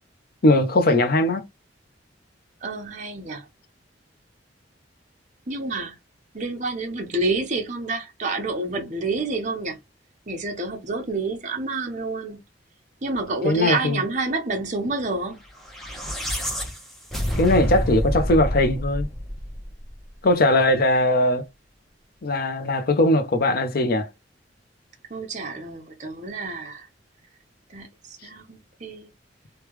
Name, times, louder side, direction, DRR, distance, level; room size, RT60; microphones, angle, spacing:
voice 1, 0.4-1.4 13.4-14.0 17.4-19.1 20.2-21.4 22.2-24.1, left 1 dB, 55° left, 0.6 m, -20 dB
voice 2, 2.6-3.4 5.5-5.9 6.3-9.8 10.3-12.4 13.0-15.4 25.1-26.9 27.7-29.1, right 3 dB, 45° right, 0.9 m, -28 dB
sound 1, 15.6-20.0, equal, ahead, 0.8 m, -28 dB
3.2 x 2.3 x 3.1 m
head